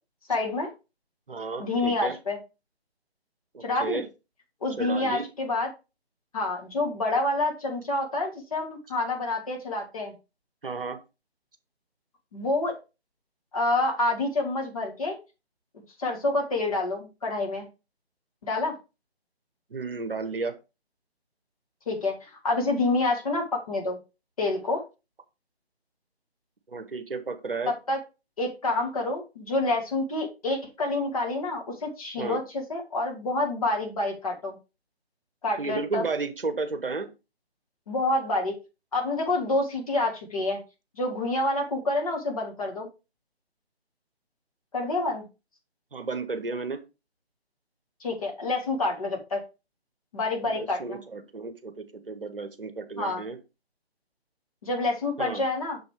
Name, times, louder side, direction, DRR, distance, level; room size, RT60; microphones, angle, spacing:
voice 1, 0.3-0.7 1.6-2.4 3.6-4.0 4.6-5.7 6.3-10.1 12.3-12.7 13.5-15.2 16.0-17.7 18.4-18.8 21.9-24.0 24.4-24.8 27.7-28.0 28.4-34.6 35.4-36.0 37.9-38.6 38.9-40.6 41.0-42.9 44.7-45.3 48.0-49.4 50.1-51.0 53.0-53.2 54.6-55.8, left 2 dB, 35° left, 0 dB, 1.8 m, -28 dB
voice 2, 1.3-2.2 3.5-4.0 4.8-5.3 10.6-11.0 19.7-20.5 26.7-27.7 32.2-32.4 35.6-37.1 45.9-46.8 50.5-53.4 55.2-55.4, right 4 dB, 55° right, 10 dB, 1.0 m, -33 dB
6.5 x 5.3 x 3.3 m, 0.28 s
figure-of-eight pair, 150°, 32 cm